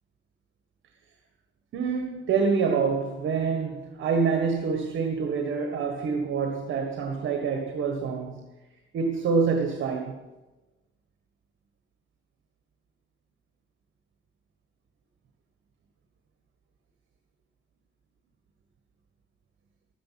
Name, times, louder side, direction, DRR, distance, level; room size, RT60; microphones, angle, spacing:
voice 1, 1.7-8.5 8.9-10.3, right 5 dB, 70° right, 1.5 m, -26 dB
13.0 x 10.5 x 7.5 m
cardioid pair, 155°, 21 cm